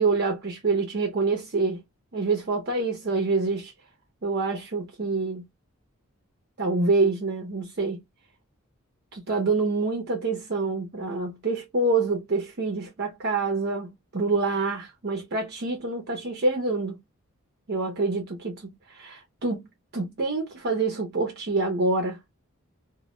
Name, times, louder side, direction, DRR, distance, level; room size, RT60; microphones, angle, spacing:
voice 1, 0.0-1.8 2.1-3.7 4.2-5.4 6.6-8.0 9.1-17.0 17.7-19.6 19.9-22.2, right 3 dB, 50° right, 0.6 m, -26 dB
2.1 x 2.1 x 2.9 m
head